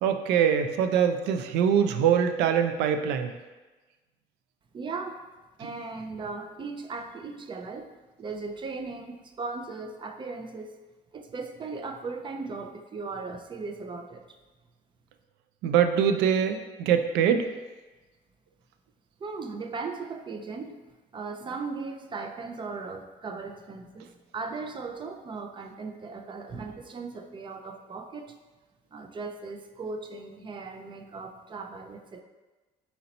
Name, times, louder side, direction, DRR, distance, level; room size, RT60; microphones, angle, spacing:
voice 1, 0.0-3.3 15.6-17.5, right 8 dB, 90° right, 8 dB, 0.4 m, -23 dB
voice 2, 4.7-5.2 5.6-10.7 11.1-14.2 19.2-20.8 21.1-28.3 28.9-32.2, right 4 dB, 30° right, 6 dB, 0.4 m, -37 dB
4.2 x 2.8 x 3.9 m, 1.2 s
cardioid pair, 110°, 17 cm